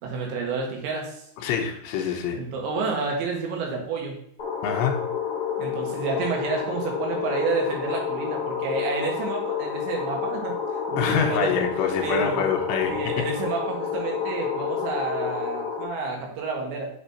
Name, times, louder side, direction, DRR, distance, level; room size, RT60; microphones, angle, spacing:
voice 1, 0.0-1.2 2.4-4.2 5.6-10.6 10.9-11.7 12.0-12.5 12.9-16.9, right 4 dB, 85° right, 0 dB, 3.9 m, -30 dB
voice 2, 1.4-2.4 4.6-5.0 11.0-13.3, left 7 dB, 80° left, 4 dB, 3.1 m, -25 dB
sound 1, 4.4-15.9, left 7 dB, 55° left, 2.1 m, -29 dB
7.4 x 7.2 x 2.9 m, 0.70 s
omnidirectional pair, 5.1 m